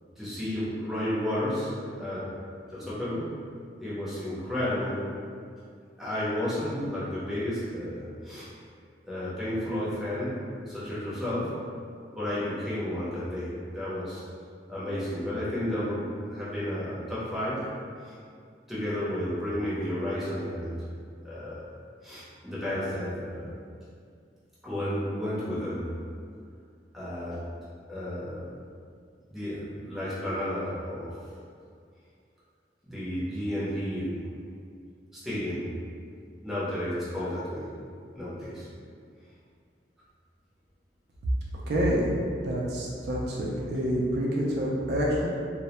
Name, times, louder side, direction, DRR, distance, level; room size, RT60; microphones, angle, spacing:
voice 1, 0.2-2.3 2.7-3.3 3.8-5.1 6.0-8.5 9.0-11.6 12.1-14.2 14.7-17.6 18.0-18.2 18.7-20.8 21.2-21.6 22.0-23.6 24.6-25.9 26.9-27.4 27.9-28.5 29.3-31.1 32.8-34.2 35.1-35.6 36.4-37.7 38.1-38.7, left 1 dB, ahead, -11 dB, 0.6 m, -32 dB
voice 2, 41.7-42.1 42.4-45.3, equal, 60° right, -4 dB, 0.4 m, -27 dB
2.1 x 2.0 x 2.9 m, 2.3 s
head